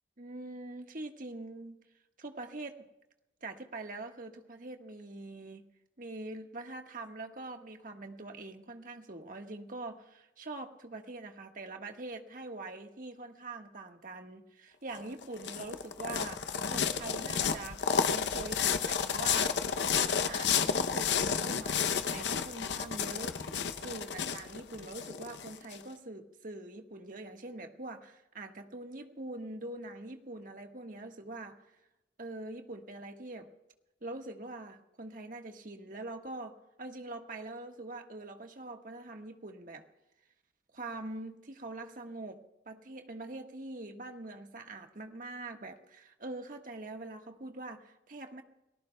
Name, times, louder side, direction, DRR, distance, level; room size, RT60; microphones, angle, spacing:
voice 1, 0.2-1.8 2.2-2.9 3.4-5.6 6.0-23.4 23.8-31.6 32.2-33.5 34.0-39.8 40.7-42.4 42.6-48.4, right 2 dB, 50° right, 4 dB, 1.5 m, -44 dB
sound 1, 14.9-25.8, left 7 dB, 80° left, 0.7 m, -31 dB
29.5 x 19.0 x 2.3 m, 0.95 s
head